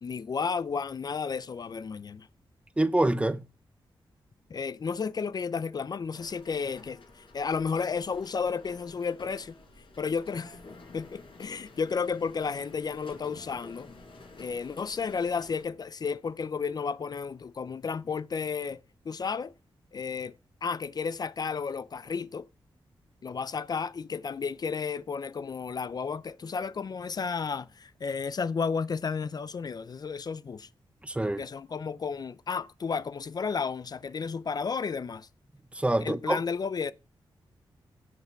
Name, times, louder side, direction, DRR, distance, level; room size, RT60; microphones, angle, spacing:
voice 1, 0.0-2.3 4.5-9.5 10.0-10.6 10.9-13.9 14.4-18.8 19.1-19.5 19.9-20.3 20.6-22.5 23.2-30.7 31.4-35.3 36.0-36.9, left 5 dB, 50° left, 0.5 m, -32 dB
voice 2, 2.8-3.5 31.0-31.4 35.7-36.4, right 1 dB, 15° right, 0.7 m, -26 dB
sound 1, 6.1-15.6, left 3 dB, 80° left, 4.9 m, -51 dB
16.5 x 5.8 x 4.5 m
cardioid pair, 90°, 9 cm